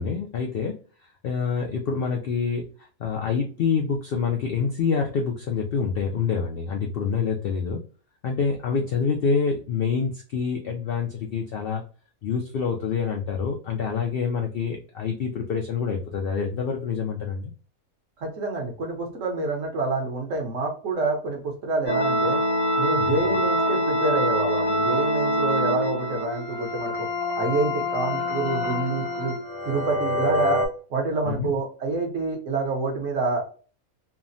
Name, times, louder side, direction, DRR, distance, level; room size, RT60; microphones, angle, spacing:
voice 1, 0.0-7.8 8.2-11.8 12.2-17.5 23.0-23.2 31.3-31.5, left 5 dB, 80° left, 1 dB, 0.5 m, -27 dB
voice 2, 18.2-22.4 22.8-27.1 27.4-29.4 29.6-33.5, right 3 dB, 65° right, 1 dB, 1.2 m, -27 dB
sound 1, 21.9-30.7, equal, 40° left, 0.7 m, -25 dB
3.3 x 2.0 x 2.5 m, 0.38 s
omnidirectional pair, 1.5 m